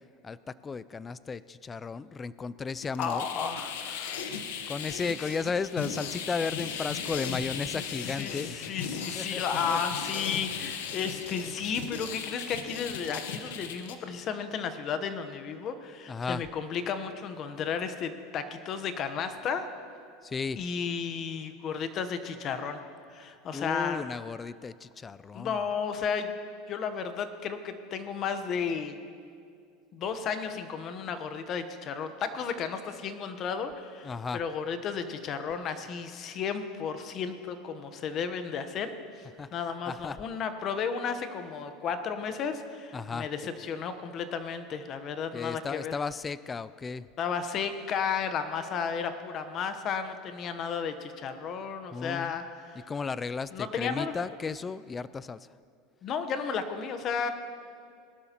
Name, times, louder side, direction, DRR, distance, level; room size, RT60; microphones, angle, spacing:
voice 1, 0.6-3.2 4.7-8.6 8.9-9.8 16.1-16.4 20.3-20.6 23.5-25.6 34.0-34.4 39.4-39.5 39.9-40.2 42.9-43.3 45.3-47.0 51.9-52.3 52.9-55.4, left 5 dB, 20° left, 17 dB, 0.3 m, -34 dB
sound 1, 2.8-14.0, left 7 dB, 90° left, 1.0 m, -37 dB
voice 2, 3.0-5.3 6.7-6.9 7.7-19.6 20.6-22.8 23.1-24.0 25.3-26.4 26.7-29.0 29.9-38.9 39.2-46.0 47.2-52.8 53.5-54.2 56.0-57.3, left 6 dB, 35° left, 9 dB, 0.9 m, -33 dB
20.0 x 12.0 x 2.9 m, 2.3 s
supercardioid pair, 140°, 0 cm